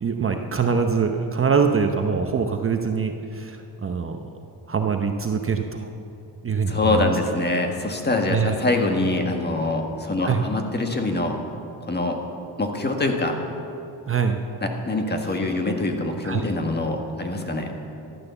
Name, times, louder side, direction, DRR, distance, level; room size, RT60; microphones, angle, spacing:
voice 1, 0.0-4.2 4.7-5.9 6.4-7.0 8.3-8.5 10.2-10.4 14.1-14.4 16.2-16.4, right 5 dB, 30° right, 5 dB, 0.8 m, -23 dB
voice 2, 6.7-11.4 11.8-12.2 12.6-13.4 14.6-17.7, left 2 dB, 25° left, 3 dB, 1.6 m, -24 dB
13.5 x 12.0 x 7.0 m, 2.8 s
cardioid pair, 135°, 42 cm